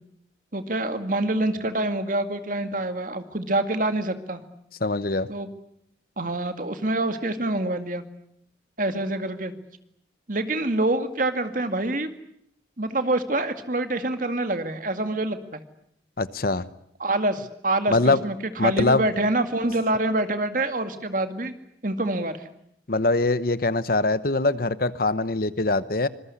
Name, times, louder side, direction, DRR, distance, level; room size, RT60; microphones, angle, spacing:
voice 1, 0.5-4.4 5.3-5.5 6.2-8.0 8.8-9.5 10.3-12.1 12.8-15.6 17.0-18.4 18.6-21.5 21.8-22.5, right 2 dB, 45° right, 8 dB, 2.2 m, -26 dB
voice 2, 4.8-5.3 16.2-16.7 17.9-18.2 18.6-19.1 22.9-26.1, left 2 dB, 55° left, 15 dB, 1.0 m, -23 dB
25.5 x 21.5 x 9.8 m, 0.73 s
head